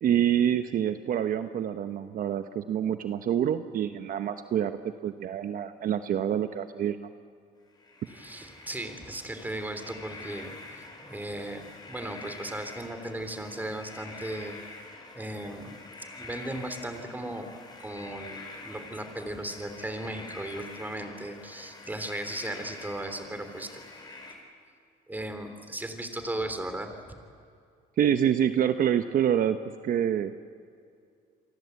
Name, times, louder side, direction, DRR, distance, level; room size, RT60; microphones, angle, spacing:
voice 1, 0.0-4.8 5.0-7.1 28.0-29.6 29.8-30.3, right 9 dB, 55° right, 9 dB, 1.0 m, -26 dB
sound 1, 7.8-24.3, left 3 dB, 25° left, 5.3 m, -46 dB
voice 2, 8.1-14.6 15.1-15.8 16.2-17.5 17.8-23.8 25.1-26.9, right 1 dB, 10° right, 7 dB, 3.5 m, -36 dB
29.0 x 23.5 x 8.2 m, 2.3 s
cardioid pair, 110°, 17 cm